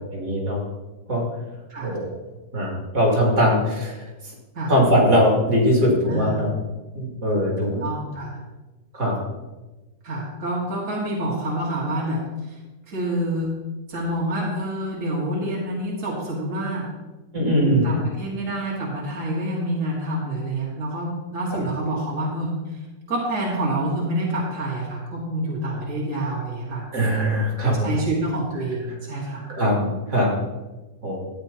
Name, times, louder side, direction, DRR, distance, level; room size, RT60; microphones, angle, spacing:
voice 1, 0.1-0.6 1.1-1.3 1.8-2.0 2.5-4.0 4.7-6.5 6.9-7.8 8.9-9.2 17.3-17.9 26.9-27.9 29.5-30.3 31.0-31.2, equal, 65° right, -3 dB, 3.1 m, -21 dB
voice 2, 6.1-6.4 7.6-8.4 10.0-12.6 12.9-13.5 13.9-16.9 17.6-22.8 23.1-26.9 27.6-29.5, right 1 dB, 45° right, -5 dB, 2.3 m, -27 dB
14.0 x 8.8 x 2.9 m, 1.1 s
omnidirectional pair, 1.9 m